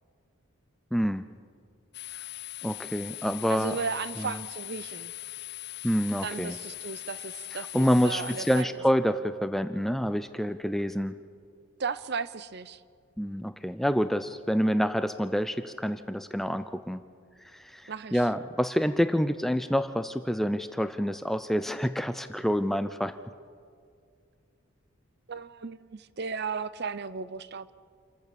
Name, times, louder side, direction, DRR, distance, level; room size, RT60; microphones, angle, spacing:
voice 1, 0.9-1.2 2.6-3.8 4.2-4.3 5.8-6.6 7.7-11.2 13.2-17.0 17.5-23.1, equal, ahead, 11 dB, 0.4 m, -27 dB
sound 1, 1.9-8.6, left 20 dB, 50° left, 0.6 m, -40 dB
voice 2, 3.5-5.1 6.2-8.7 11.8-12.8 17.9-18.2 25.3-27.7, right 5 dB, 50° right, 16 dB, 0.6 m, -35 dB
28.0 x 14.5 x 6.9 m, 2.2 s
head